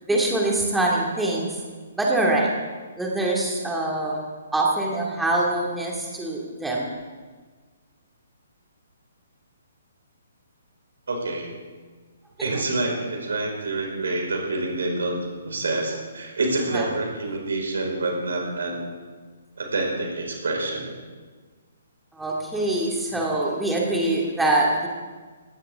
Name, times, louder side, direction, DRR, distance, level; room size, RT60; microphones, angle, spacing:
voice 1, 0.1-1.6 1.9-2.5 3.0-6.9 12.4-12.5 16.7-16.8 22.1-24.9, right 2 dB, 5° right, -3 dB, 2.4 m, -24 dB
voice 2, 11.1-11.5 12.4-15.2 15.4-18.8 19.6-20.9, right 2 dB, 65° right, 0 dB, 5.2 m, -27 dB
19.0 x 17.0 x 3.7 m, 1.4 s
figure-of-eight pair, 130°, 0 cm